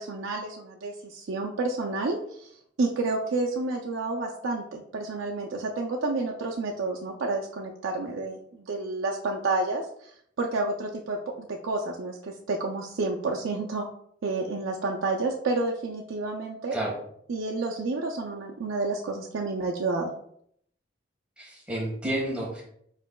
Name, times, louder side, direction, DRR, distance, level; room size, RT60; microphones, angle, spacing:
voice 1, 0.0-2.5 2.8-13.9 14.2-16.7 17.3-20.1, right 3 dB, 90° right, 0 dB, 0.5 m, -30 dB
voice 2, 21.4-22.6, right 1 dB, 5° right, -4 dB, 1.5 m, -30 dB
4.8 x 4.5 x 2.3 m, 0.68 s
head